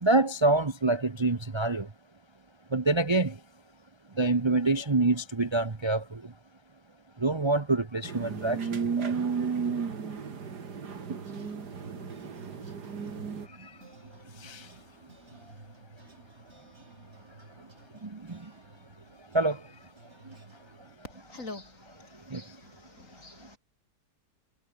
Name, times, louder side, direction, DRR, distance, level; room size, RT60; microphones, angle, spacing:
voice 1, 0.0-1.9 2.7-3.3 4.2-6.0 7.2-8.6 9.0-9.1 14.4-14.6 18.3-18.4 19.3-19.6 22.3-22.4, right 2 dB, 20° right, 0.8 m, -25 dB
sound 1, 8.0-13.5, right 6 dB, 90° right, 2.7 m, -33 dB
sound 2, 11.2-21.0, right 2 dB, 45° right, 4.4 m, -54 dB
voice 2, 21.1-23.6, left 2 dB, 50° left, 4.7 m, -46 dB
omnidirectional pair, 1.7 m